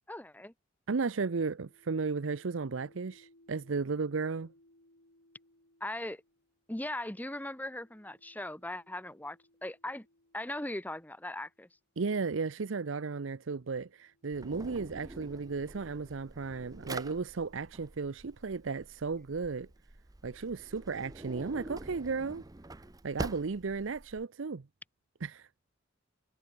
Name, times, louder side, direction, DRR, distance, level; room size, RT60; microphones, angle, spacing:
voice 1, 0.1-0.5 5.8-6.2 6.7-10.1 10.3-11.7, left 1 dB, 10° left, 1.3 m, -39 dB
voice 2, 0.9-4.5 12.0-19.7 20.2-22.4 23.0-24.6 25.2-25.5, right 4 dB, 75° right, 0.6 m, -34 dB
sound 1, 1.3-11.6 12.5-16.3, left 1 dB, 70° left, 6.3 m, -67 dB
Drawer open or close, 14.3-24.2, right 2 dB, 20° right, 0.7 m, -46 dB
head